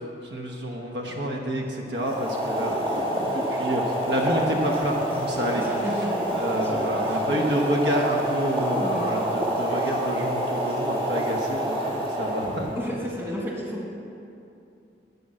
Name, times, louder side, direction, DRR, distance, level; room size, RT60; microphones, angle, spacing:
voice 1, 0.3-5.6 6.3-12.7, equal, 70° right, 0 dB, 1.2 m, -28 dB
Boiling, 1.9-12.9, right 1 dB, 30° right, 2.2 m, -27 dB
voice 2, 5.6-7.4 8.8-9.1 12.8-13.9, equal, 15° right, -3 dB, 1.8 m, -33 dB
12.0 x 5.5 x 7.8 m, 2.6 s
head